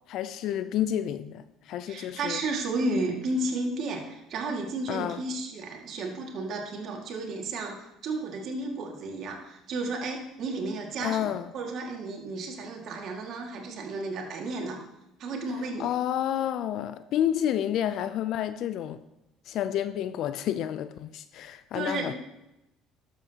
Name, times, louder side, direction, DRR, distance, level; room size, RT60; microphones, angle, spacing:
voice 1, 0.1-2.4 4.9-5.2 11.0-11.5 15.8-19.0 19.5-22.1, left 10 dB, 65° left, 0.4 m, -30 dB
voice 2, 1.9-14.8 15.2-15.9 21.7-22.1, right 2 dB, 60° right, 2.0 m, -33 dB
12.0 x 7.4 x 2.9 m
supercardioid pair, 75°, 0 cm